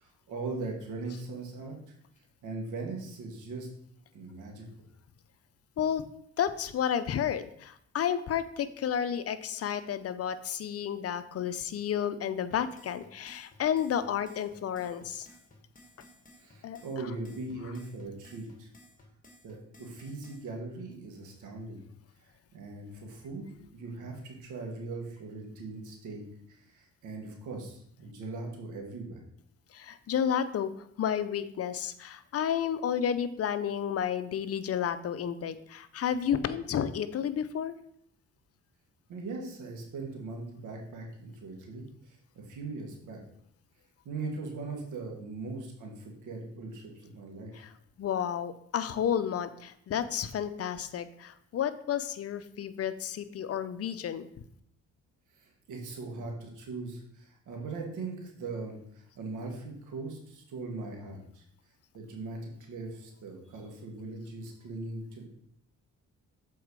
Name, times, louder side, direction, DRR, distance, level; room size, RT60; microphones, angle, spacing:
voice 1, 0.0-1.9 2.4-3.7 4.1-4.7 16.4-18.7 19.4-21.9 22.5-26.2 26.5-29.2 39.1-43.2 44.1-47.7 55.4-61.4 61.9-65.3, right 3 dB, 80° right, 1 dB, 1.9 m, -40 dB
voice 2, 6.4-15.3 16.6-17.1 29.7-37.7 47.5-47.7 48.0-54.3, left 8 dB, 50° left, 12 dB, 0.6 m, -31 dB
sound 1, 12.5-20.5, left 1 dB, 25° left, 2.0 m, -57 dB
7.1 x 4.5 x 4.7 m, 0.69 s
cardioid pair, 90°, 30 cm